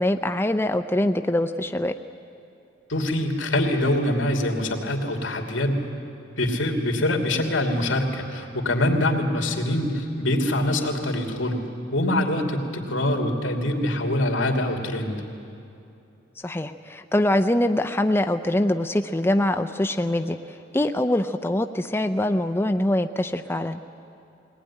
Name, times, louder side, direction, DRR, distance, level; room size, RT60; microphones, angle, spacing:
voice 1, 0.0-1.9 16.4-20.4 20.7-23.8, left 1 dB, 10° left, 7 dB, 0.5 m, -23 dB
voice 2, 2.9-5.8 6.4-11.6 11.9-15.2, left 1 dB, 90° left, 2 dB, 2.8 m, -24 dB
21.5 x 19.0 x 9.9 m, 2.7 s
head